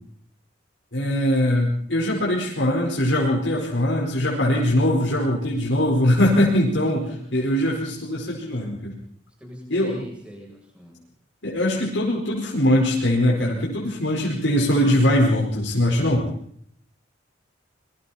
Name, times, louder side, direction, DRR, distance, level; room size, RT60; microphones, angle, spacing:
voice 1, 0.9-8.9 9.7-10.0 11.4-16.3, left 1 dB, 75° left, -2 dB, 4.8 m, -21 dB
voice 2, 6.8-7.2 9.4-11.0, equal, 5° right, -1 dB, 7.8 m, -41 dB
26.5 x 22.5 x 4.3 m, 0.64 s
head